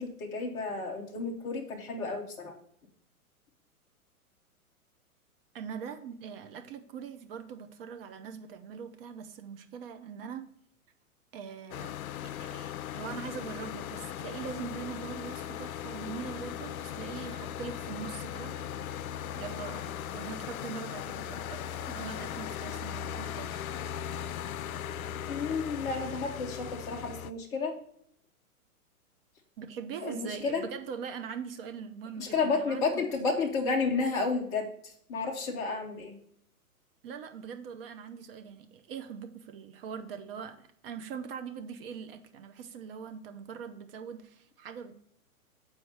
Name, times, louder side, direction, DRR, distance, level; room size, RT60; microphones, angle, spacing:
voice 1, 0.0-2.5 25.3-27.7 30.0-30.6 32.2-36.2, left 4 dB, 10° left, 1 dB, 0.4 m, -31 dB
voice 2, 5.5-10.5 11.3-11.9 12.2-18.7 19.4-23.6 29.6-33.1 37.0-44.9, right 7 dB, 40° right, 7 dB, 0.7 m, -42 dB
sound 1, 11.7-27.3, left 9 dB, 70° left, 0.5 m, -38 dB
7.0 x 4.6 x 4.7 m, 0.69 s
hypercardioid pair, 115°, 44 cm